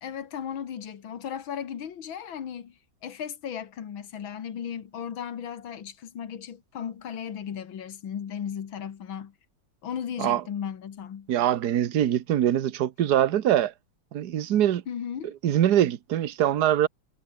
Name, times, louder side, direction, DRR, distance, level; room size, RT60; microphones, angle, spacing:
voice 1, 0.0-9.3 9.8-11.3 14.9-15.3, left 8 dB, 85° left, 2.4 m, -36 dB
voice 2, 11.3-13.7 14.1-14.8 15.4-16.9, right 11 dB, 60° right, 1.5 m, -23 dB
omnidirectional pair, 2.1 m